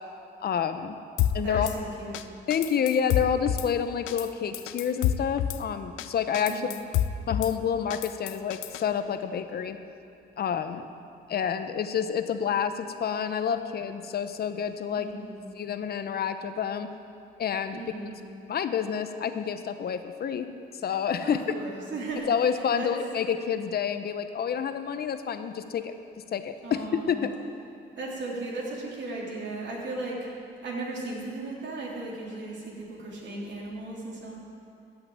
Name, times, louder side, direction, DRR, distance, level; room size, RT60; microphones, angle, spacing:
voice 1, 0.4-1.0 1.3-1.7 2.5-6.6 7.3-9.8 10.4-10.8 11.3-15.1 15.6-16.9 17.4-17.8 18.5-20.5 20.8-21.4 22.2-25.9 26.3-27.3, left 7 dB, 55° left, 9 dB, 0.8 m, -28 dB
Drum kit / Snare drum, 1.2-1.8 2.1-2.2 2.5-3.7 4.1-4.3 4.5-5.6 6.0-6.1 6.3-7.5 7.9-8.8, left 11 dB, 85° left, 0.5 m, -28 dB
voice 2, 1.4-2.2 6.5-6.7 15.0-15.4 17.7-18.2 21.2-22.5 22.7-22.9 26.6-27.4 28.0-30.3 30.6-34.4, right 2 dB, 65° right, -3 dB, 3.3 m, -36 dB
13.5 x 5.8 x 8.7 m, 2.6 s
cardioid pair, 90°, 20 cm